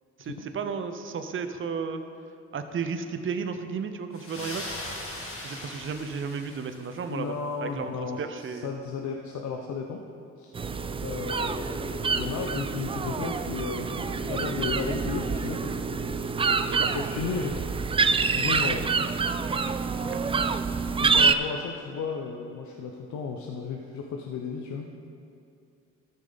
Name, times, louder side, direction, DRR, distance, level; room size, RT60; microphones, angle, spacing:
voice 1, 0.2-2.0 2.5-4.8 5.4-7.4 7.6-8.7 16.7-17.0 20.1-20.2, right 5 dB, 45° right, 8 dB, 0.7 m, -33 dB
sound 1, 4.1-7.2, left 1 dB, 45° left, 2.1 m, -39 dB
voice 2, 7.1-10.0 10.4-10.6 11.0-16.3 16.9-17.6 18.3-18.9 21.0-24.9, left 5 dB, 70° left, 2 dB, 0.8 m, -34 dB
sound 2, 10.5-21.3, right 5 dB, 20° right, 0.3 m, -27 dB
13.0 x 6.5 x 4.0 m, 2.6 s
cardioid pair, 90°, 30 cm